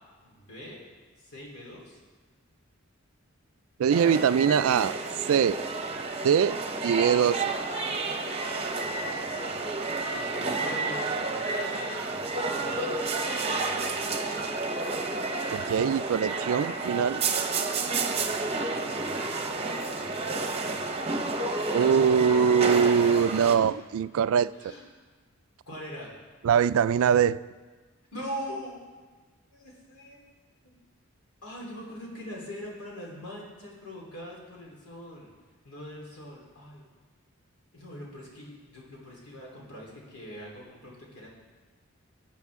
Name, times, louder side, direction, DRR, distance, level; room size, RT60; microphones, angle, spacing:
voice 1, 0.2-0.8 1.2-2.0 5.8-6.1 8.8-9.7 10.1-13.0 13.3-14.5 18.0-21.2 24.5-24.8 25.7-26.1 28.1-28.8 29.5-30.2 30.6-30.8 31.4-35.3 35.6-36.9 37.7-41.3, equal, 85° left, -3 dB, 3.6 m, -43 dB
voice 2, 3.8-5.0 5.3-5.6 6.2-7.5 15.5-17.2 21.7-24.7 26.4-27.4, right 7 dB, 70° right, 16 dB, 0.3 m, -23 dB
sound 1, 3.9-23.6, right 3 dB, 25° right, 0.8 m, -30 dB
21.0 x 8.3 x 3.6 m, 1.4 s
head